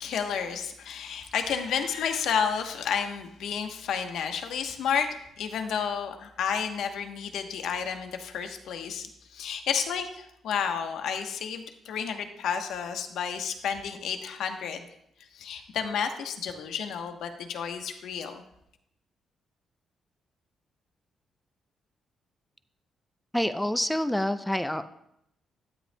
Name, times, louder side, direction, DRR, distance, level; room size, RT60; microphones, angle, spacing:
voice 1, 0.0-5.1 5.4-14.9 15.3-18.4, left 7 dB, 80° left, 5 dB, 1.0 m, -31 dB
voice 2, 23.3-24.9, left 1 dB, 5° left, 11 dB, 0.5 m, -27 dB
12.5 x 9.6 x 2.2 m, 0.77 s
cardioid pair, 75°, 0 cm